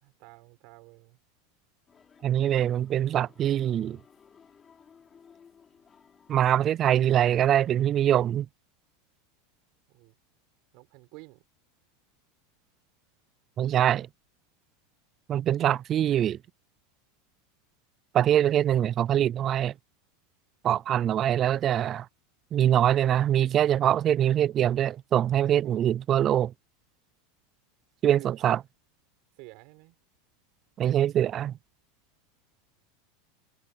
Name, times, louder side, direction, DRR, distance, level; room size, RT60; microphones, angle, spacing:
voice 1, 0.0-1.2 9.9-10.1 10.7-11.4 25.6-25.9 28.2-28.6 29.3-30.0, right 27 dB, 55° right, 5.1 m, -50 dB
sound 1, 1.9-8.4, left 7 dB, 20° left, 5.9 m, -58 dB
voice 2, 2.2-4.0 6.3-8.5 13.6-14.1 15.3-16.4 18.1-19.7 20.6-22.1 22.5-26.5 28.0-28.6 30.8-31.5, right 11 dB, 30° right, 0.4 m, -23 dB
supercardioid pair, 150°, 0 cm